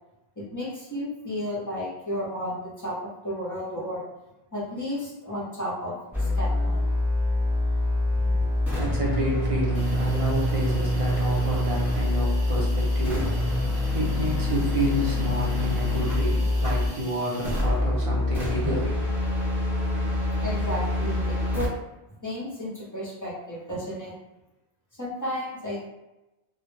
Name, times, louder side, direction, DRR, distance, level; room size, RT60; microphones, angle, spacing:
voice 1, 0.5-3.0 3.2-4.0 4.5-6.9 16.1-16.2 16.6-16.7 20.4-21.7 22.2-24.1 25.0-25.9, equal, 25° left, -7 dB, 0.5 m, -33 dB
Distorted sound, 6.1-17.0 17.4-21.7, left 1 dB, ahead, 0.8 m, -25 dB
voice 2, 8.1-19.0, equal, 40° right, -4 dB, 0.6 m, -30 dB
Hiss, 9.7-17.6, right 2 dB, 70° right, 0.9 m, -46 dB
2.1 x 2.0 x 3.1 m, 1.0 s
omnidirectional pair, 1.0 m